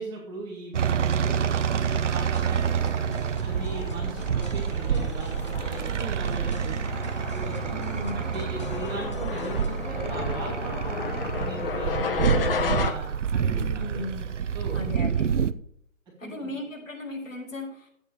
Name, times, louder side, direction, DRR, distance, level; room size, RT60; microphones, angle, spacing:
voice 1, 0.0-3.1 3.4-6.8 7.1-7.8 8.1-14.0 14.5-14.9 16.2-16.5, right 3 dB, 10° right, -4 dB, 2.5 m, -39 dB
sound 1, 0.7-15.5, right 7 dB, 65° right, 0.8 m, -28 dB
sound 2, 1.2-12.9, left 5 dB, 45° left, 1.3 m, -34 dB
sound 3, 1.6-9.9, left 3 dB, 25° left, 0.5 m, -46 dB
voice 2, 7.7-8.2 13.5-14.2 14.7-15.3 16.2-17.9, left 2 dB, 75° left, -1 dB, 6.0 m, -36 dB
12.0 x 8.9 x 5.0 m, 0.71 s
hypercardioid pair, 155°, 39 cm